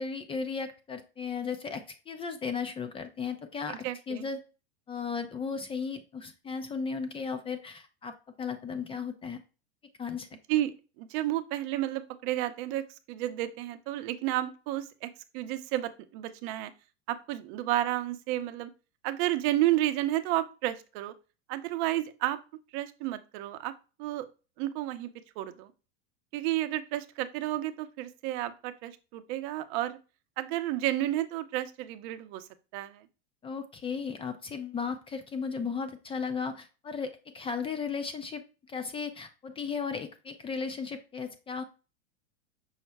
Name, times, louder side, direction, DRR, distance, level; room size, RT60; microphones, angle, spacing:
voice 1, 0.0-4.4 4.9-9.4 10.0-10.3 33.4-38.4 38.7-41.6, left 5 dB, 15° left, 8 dB, 0.4 m, -35 dB
voice 2, 3.7-4.3 10.5-12.8 13.1-16.7 17.1-18.7 19.0-21.1 21.5-22.4 22.7-23.7 24.0-24.3 24.6-25.1 25.4-25.7 26.3-30.0 30.4-32.4 32.7-33.0, right 14 dB, 50° right, 11 dB, 0.7 m, -31 dB
5.6 x 2.0 x 4.6 m, 0.33 s
hypercardioid pair, 110°, 33 cm